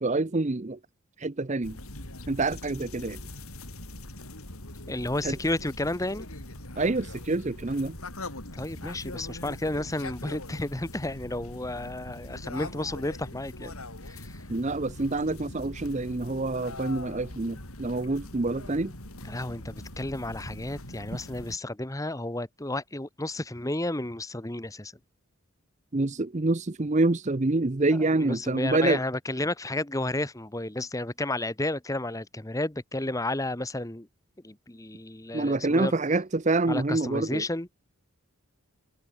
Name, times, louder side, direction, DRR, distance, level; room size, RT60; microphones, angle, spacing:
voice 1, 0.0-0.8 1.2-1.8 2.3-3.2 5.2-5.3 6.8-7.9 14.5-18.9 25.9-29.0 35.3-37.4, right 2 dB, 30° right, 0.7 m, -27 dB
sound 1, 1.6-21.6, left 1 dB, 80° left, 7.5 m, -42 dB
voice 2, 4.9-6.3 8.6-13.7 14.1-14.4 19.3-24.9 28.2-34.1 34.4-35.9 36.7-37.9, left 1 dB, 15° left, 1.1 m, -32 dB
head